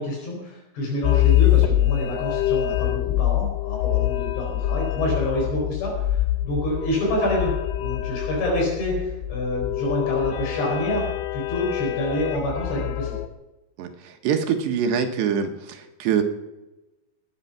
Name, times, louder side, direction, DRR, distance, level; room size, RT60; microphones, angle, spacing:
voice 1, 0.0-11.1 11.3-13.2, left 1 dB, 75° left, -2 dB, 6.9 m, -27 dB
sound 1, 1.0-13.3, left 14 dB, 90° left, 3.2 m, -24 dB
voice 2, 13.8-16.2, right 7 dB, 75° right, 5 dB, 3.5 m, -24 dB
19.5 x 11.0 x 5.8 m, 1.0 s
omnidirectional pair, 5.1 m